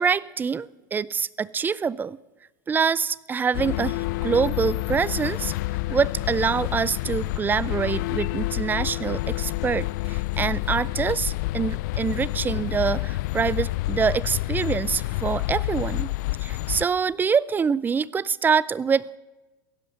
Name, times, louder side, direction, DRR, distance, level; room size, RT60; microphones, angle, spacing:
voice 1, 0.0-2.2 2.7-5.5 5.9-16.1 16.4-19.2, right 6 dB, 20° right, 22 dB, 0.4 m, -25 dB
sound 1, 3.5-16.9, left 19 dB, 65° left, 0.4 m, -28 dB
16.0 x 11.0 x 7.6 m, 1.1 s
hypercardioid pair, 95°, 11 cm